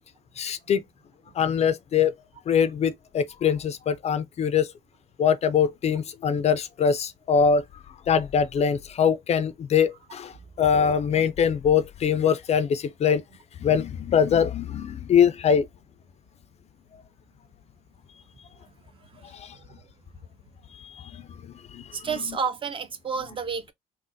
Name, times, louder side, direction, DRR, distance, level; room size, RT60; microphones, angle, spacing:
voice 1, 0.4-0.8 1.4-2.1 2.5-4.7 5.2-7.6 8.1-13.2 13.6-15.6 16.9-17.0 19.3-19.5 20.8-21.2 21.7-22.1, left 7 dB, 40° left, 0.4 m, -23 dB
voice 2, 21.9-23.7, right 5 dB, 30° right, 0.4 m, -30 dB
3.8 x 2.0 x 2.6 m
cardioid pair, 110°, 17 cm